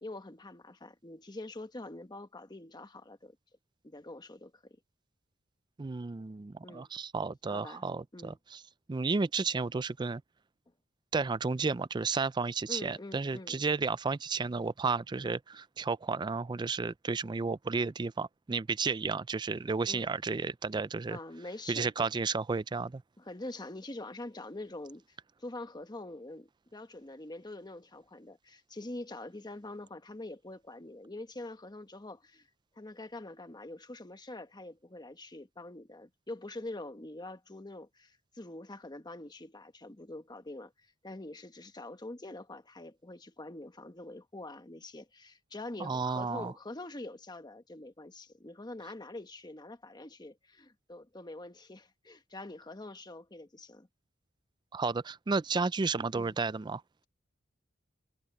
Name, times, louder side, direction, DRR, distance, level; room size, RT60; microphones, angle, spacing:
voice 1, 0.0-3.4 3.8-4.8 6.6-6.9 7.5-7.8 8.1-8.4 12.7-13.6 19.9-20.1 21.1-22.1 23.2-32.5 32.8-53.9 56.1-56.4, left 2 dB, 20° left, 1.1 m, -45 dB
voice 2, 5.8-8.6 8.9-10.2 11.1-21.2 21.7-23.0 45.8-46.5 54.7-56.8, right 4 dB, 20° right, 0.4 m, -32 dB
head